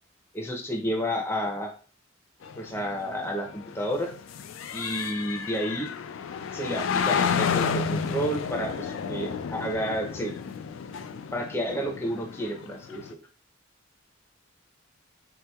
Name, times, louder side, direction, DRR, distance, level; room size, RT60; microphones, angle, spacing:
voice 1, 0.3-1.7 2.6-4.1 4.7-5.9 6.5-10.3 11.3-13.2, equal, 10° left, 1 dB, 0.5 m, -31 dB
sound 1, 2.4-13.1, left 6 dB, 75° left, 0.3 m, -31 dB
3.6 x 2.8 x 2.2 m, 0.39 s
head